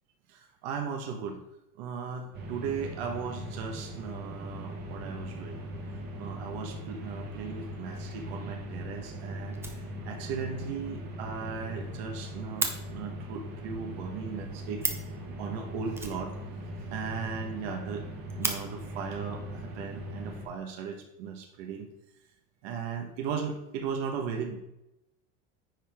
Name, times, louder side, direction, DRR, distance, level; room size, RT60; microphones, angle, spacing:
voice 1, 0.3-1.4 1.8-14.8 15.2-16.4 16.9-18.0 18.4-21.9 22.6-24.6, right 6 dB, 70° right, 3 dB, 1.3 m, -37 dB
sound 1, 2.3-20.5, equal, 30° right, 1.3 m, -40 dB
Fire, 9.5-10.4 10.7-10.8 11.1-11.2 11.4-11.5 11.8-12.8 14.5-14.6 14.8-15.2 15.9-16.9 17.2-17.3 17.5-17.6 18.0-18.6 19.6-19.7 20.3-20.9, right 3 dB, 10° right, 0.5 m, -34 dB
9.6 x 4.9 x 3.5 m, 0.89 s
cardioid pair, 165°, 32 cm